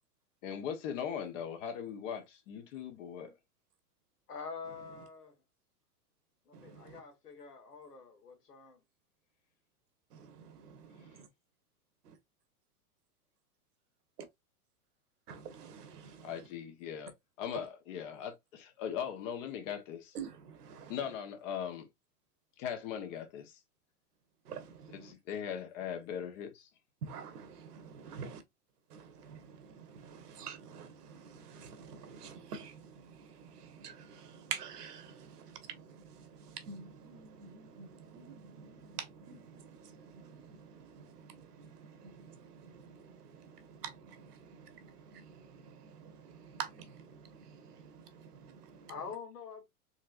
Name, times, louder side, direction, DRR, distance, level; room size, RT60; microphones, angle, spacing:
voice 1, 0.4-3.3 16.2-17.1 17.4-20.2 20.9-21.9 22.6-23.6 24.9-26.7, left 8 dB, 55° left, 1.2 m, -39 dB
voice 2, 4.3-5.4 6.5-8.8 48.9-49.6, left 5 dB, 90° left, 1.7 m, -46 dB
voice 3, 6.5-7.0 10.1-11.3 12.1-12.2 15.3-16.3 20.1-20.9 24.5-25.1 27.0-28.4 28.9-48.9, right 6 dB, 80° right, 1.3 m, -48 dB
4.4 x 3.0 x 2.5 m
hypercardioid pair, 115°, 46 cm